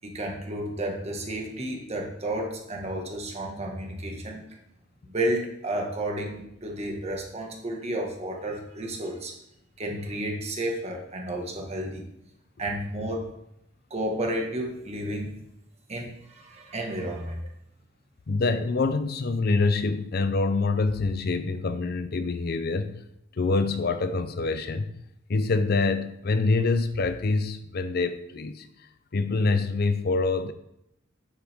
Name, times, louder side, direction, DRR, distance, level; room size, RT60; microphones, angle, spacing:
voice 1, 0.0-4.4 5.1-9.3 9.8-12.0 12.6-13.3 13.9-15.4 15.9-17.4, right 1 dB, 35° right, 0 dB, 1.6 m, -32 dB
voice 2, 18.3-23.0 23.4-24.9 25.3-28.7 29.1-30.5, left 3 dB, 50° left, 10 dB, 0.5 m, -25 dB
9.0 x 7.3 x 3.6 m, 0.80 s
head